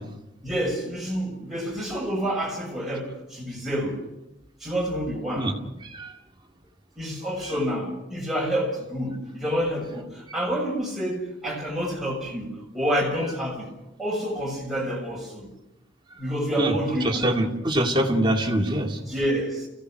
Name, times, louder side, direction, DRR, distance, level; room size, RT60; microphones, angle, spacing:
voice 1, 0.4-4.0 4.6-5.6 7.0-13.7 14.0-15.5 16.2-17.3 19.0-19.7, equal, ahead, 6.6 m, -28 dB
voice 2, 17.0-19.0, right 1 dB, 25° right, 2.5 m, -24 dB
29.5 x 16.5 x 6.6 m
head